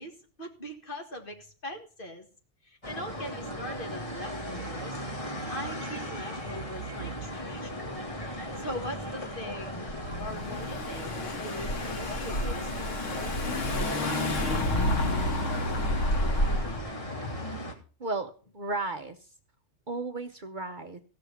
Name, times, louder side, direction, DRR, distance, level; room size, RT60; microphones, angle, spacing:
voice 1, 0.0-2.3 2.6-7.9 8.3-14.2, left 1 dB, 45° left, 3 dB, 2.1 m, -41 dB
sound 1, 2.8-17.7, equal, 30° left, 2.3 m, -36 dB
Car / Engine, 9.9-16.8, left 1 dB, 85° left, 1.6 m, -30 dB
voice 2, 18.0-19.3 19.9-21.0, right 3 dB, 45° right, 7 dB, 1.0 m, -34 dB
16.0 x 6.1 x 7.0 m, 0.39 s
omnidirectional pair, 1.3 m